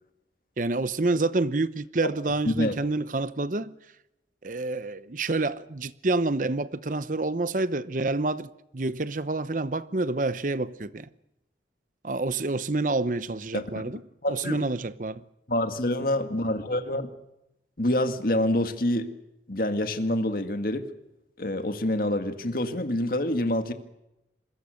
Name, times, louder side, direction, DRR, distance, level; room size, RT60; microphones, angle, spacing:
voice 1, 0.6-3.7 4.4-11.1 12.0-14.0 14.3-15.2, right 2 dB, 45° right, 0.8 m, -28 dB
voice 2, 2.5-2.8 13.5-13.6 14.2-14.6 15.5-17.1 17.8-19.1 19.5-20.8 21.4-23.7, left 1 dB, 55° left, 2.0 m, -26 dB
27.0 x 21.5 x 6.5 m
head